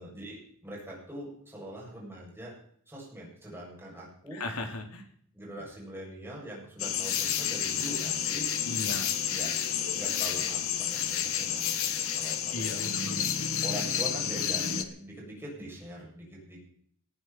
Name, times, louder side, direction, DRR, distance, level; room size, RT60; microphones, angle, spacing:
voice 1, 0.0-2.5 2.9-4.4 5.3-8.5 9.3-9.6 9.9-11.8 12.1-12.8 13.6-16.6, right 1 dB, 10° right, -4 dB, 7.9 m, -43 dB
voice 2, 4.3-5.1 8.7-9.1 12.5-13.3, left 2 dB, 85° left, 4 dB, 2.9 m, -37 dB
sound 1, 6.8-14.8, left 8 dB, 65° left, 1.5 m, -30 dB
sound 2, 7.9-10.5 10.8-13.3, right 3 dB, 35° right, 2.2 m, -54 dB
19.0 x 14.5 x 4.6 m, 0.63 s
head